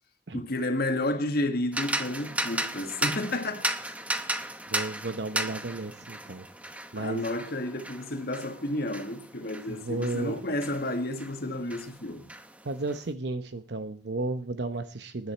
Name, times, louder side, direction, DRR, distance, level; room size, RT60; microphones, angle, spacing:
voice 1, 0.3-3.7 7.0-12.3, left 1 dB, 55° left, 1.8 m, -31 dB
sound 1, 1.7-11.4 11.7-13.0, right 1 dB, 5° right, 0.9 m, -35 dB
voice 2, 4.7-6.5 6.9-7.3 9.7-10.4 12.6-15.3, right 2 dB, 60° right, 0.9 m, -33 dB
20.0 x 10.0 x 4.4 m
head